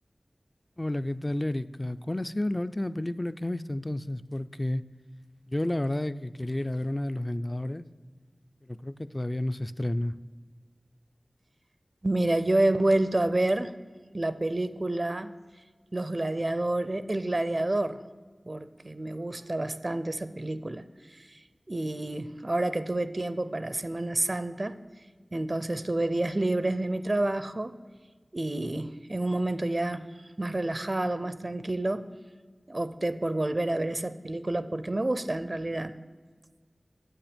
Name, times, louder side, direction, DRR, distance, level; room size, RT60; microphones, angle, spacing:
voice 1, 0.8-4.8 5.5-7.8 8.7-10.2, left 1 dB, 25° left, 14 dB, 0.3 m, -31 dB
voice 2, 12.0-13.8 14.1-15.3 15.9-18.0 18.5-21.4 21.7-24.8 25.3-27.8 28.3-30.1 30.4-32.1 32.7-36.0, right 1 dB, 45° right, 13 dB, 0.4 m, -29 dB
8.8 x 8.3 x 5.1 m, 1.5 s
wide cardioid pair, 50°, 0 cm